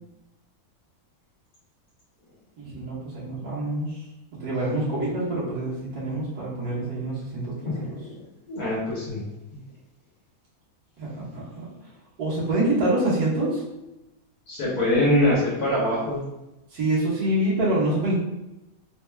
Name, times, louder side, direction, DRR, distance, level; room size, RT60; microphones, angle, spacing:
voice 1, 2.6-3.9 4.4-8.0 11.0-11.7 12.2-13.6 16.7-18.1, right 1 dB, 85° right, -8 dB, 1.7 m, -26 dB
voice 2, 7.7-8.2 8.5-9.2 14.5-16.2, left 1 dB, 85° left, -7 dB, 1.5 m, -24 dB
4.1 x 3.2 x 2.3 m, 0.94 s
omnidirectional pair, 1.5 m